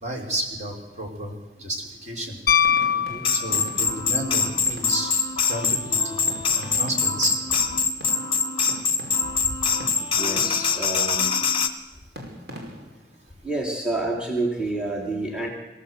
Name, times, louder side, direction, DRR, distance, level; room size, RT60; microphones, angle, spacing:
voice 1, 0.0-1.3 1.6-2.4 3.3-5.1 5.5-6.2 6.5-7.4 9.5-9.6, right 1 dB, 40° right, 1 dB, 5.0 m, -31 dB
Piano, 2.5-4.0 6.4-6.5, left 8 dB, 55° left, 0.7 m, -22 dB
sound 1, 2.6-5.3 5.6-9.5 9.8-10.9 12.2-13.1, equal, 65° right, 5.4 m, -41 dB
sound 2, 3.2-11.7, left 5 dB, 30° left, 1.5 m, -24 dB
voice 2, 10.0-11.3 13.4-15.5, right 2 dB, 5° right, -1 dB, 3.2 m, -29 dB
25.0 x 17.0 x 8.1 m, 1.1 s
head